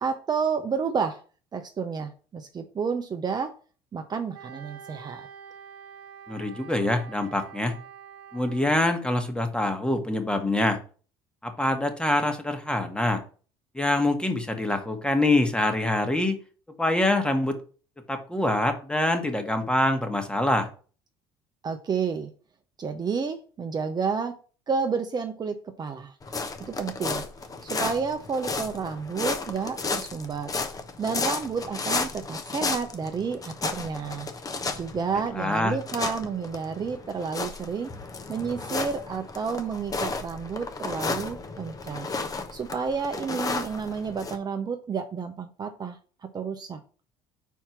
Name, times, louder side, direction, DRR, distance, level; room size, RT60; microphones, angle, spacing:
voice 1, 0.0-1.2 1.5-3.5 3.9-5.3 21.6-22.3 22.8-24.3 24.7-26.1 26.7-27.2 27.6-30.5 31.0-34.3 34.8-37.9 38.3-42.1 42.5-46.0 46.3-46.8, right 5 dB, 35° right, 6 dB, 0.7 m, -30 dB
Wind instrument woodwind instrument, 4.3-9.1, right 7 dB, 85° right, 0.8 m, -46 dB
voice 2, 6.3-7.7 8.3-10.8 11.4-13.2 13.7-16.4 16.8-17.6 18.1-20.7 35.4-35.8, left 1 dB, 10° left, 6 dB, 1.4 m, -25 dB
sound 1, 26.2-44.4, left 4 dB, 30° left, 1.0 m, -33 dB
4.6 x 4.4 x 5.9 m, 0.39 s
hypercardioid pair, 70°, 12 cm